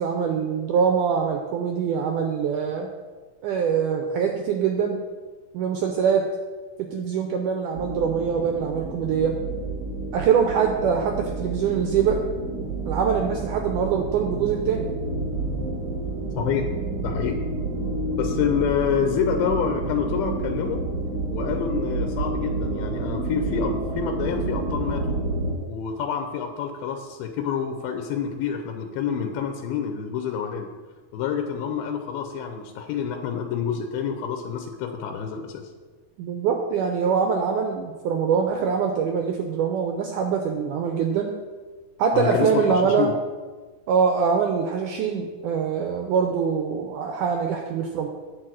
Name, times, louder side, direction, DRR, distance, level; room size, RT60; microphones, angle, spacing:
voice 1, 0.0-2.9 3.4-5.0 5.5-6.2 6.9-9.4 10.1-12.2 12.9-14.9 36.2-41.3 42.0-43.1 43.9-48.1, right 6 dB, 90° right, 3 dB, 1.8 m, -23 dB
sound 1, 7.7-25.5, right 2 dB, 65° right, 1.2 m, -29 dB
voice 2, 16.4-16.7 17.0-17.4 18.2-20.8 21.3-25.2 25.7-30.7 31.1-35.6 42.1-43.1, left 7 dB, 85° left, 5 dB, 2.5 m, -27 dB
9.5 x 4.8 x 7.5 m, 1.4 s
omnidirectional pair, 4.4 m